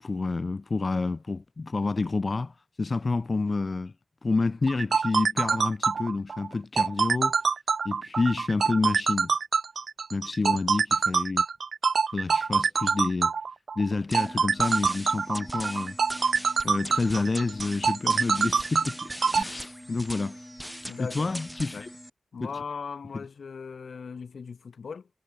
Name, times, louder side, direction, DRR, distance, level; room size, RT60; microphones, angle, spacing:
voice 1, 0.0-3.9 4.2-7.4 7.8-9.3 10.1-11.4 12.1-13.3 13.8-15.9 16.6-20.5 21.0-21.9 22.4-22.5, left 3 dB, 45° left, 0.6 m, -29 dB
sound 1, 4.7-19.4, right 5 dB, 75° right, 0.3 m, -25 dB
sound 2, 14.1-22.1, equal, ahead, 4.3 m, -40 dB
voice 2, 20.9-21.4 21.7-21.9 22.3-25.1, left 5 dB, 80° left, 1.7 m, -38 dB
wide cardioid pair, 95°, 0 cm